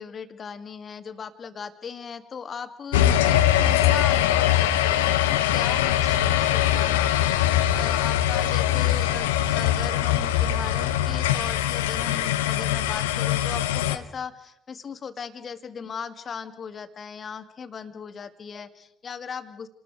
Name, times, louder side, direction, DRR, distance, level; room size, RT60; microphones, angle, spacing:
voice 1, 0.0-7.4 7.7-19.7, left 6 dB, 40° left, 9 dB, 1.9 m, -37 dB
sound 1, 2.9-14.0, left 12 dB, 75° left, 1.0 m, -22 dB
29.5 x 20.0 x 4.8 m, 0.75 s
figure-of-eight pair, 50°, 0 cm